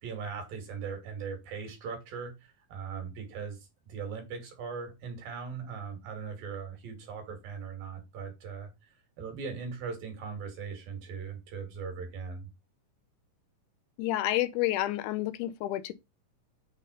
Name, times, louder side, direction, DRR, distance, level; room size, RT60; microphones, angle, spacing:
voice 1, 0.0-3.6 3.9-8.7 9.2-12.5, right 5 dB, 75° right, 4.2 m, -39 dB
voice 2, 14.0-15.9, left 15 dB, 75° left, 2.0 m, -29 dB
8.3 x 3.8 x 5.3 m
omnidirectional pair, 4.1 m